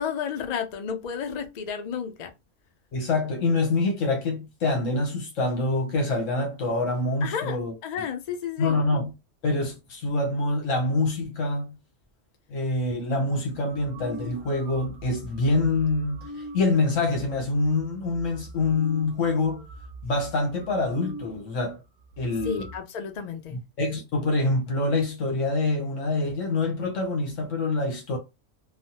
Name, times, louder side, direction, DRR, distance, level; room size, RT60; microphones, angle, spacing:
voice 1, 0.0-2.3 7.2-8.8 22.4-23.6, left 7 dB, 65° left, 0.4 m, -32 dB
voice 2, 2.9-7.7 8.6-9.1 9.4-11.7 12.5-19.7 20.0-21.8 22.2-22.7 23.5-28.2, left 2 dB, 80° left, 1.2 m, -26 dB
sound 1, 13.5-21.4 21.7-21.8 22.0-22.8, right 1 dB, 50° right, 0.6 m, -43 dB
3.2 x 2.0 x 2.7 m
omnidirectional pair, 1.3 m